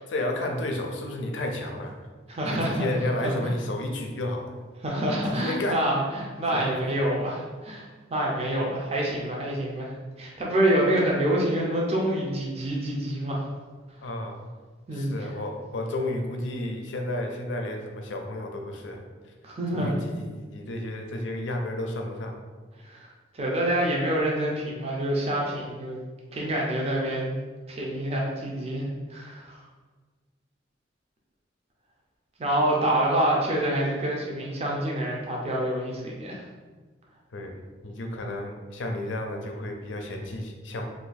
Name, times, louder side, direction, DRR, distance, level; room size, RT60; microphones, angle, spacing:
voice 1, 0.1-2.0 2.5-4.5 5.3-5.9 6.5-6.8 14.0-14.5 14.9-19.3 19.7-22.4 37.3-37.6 37.8-40.9, left 1 dB, 75° left, 3 dB, 0.5 m, -32 dB
voice 2, 2.3-2.9 3.2-3.5 4.8-9.9 10.2-13.5 14.9-15.1 19.4-20.0 22.9-26.0 26.3-27.4 27.7-29.6 32.4-36.4, right 1 dB, 30° right, -3 dB, 0.5 m, -27 dB
2.7 x 2.5 x 3.9 m, 1.4 s
head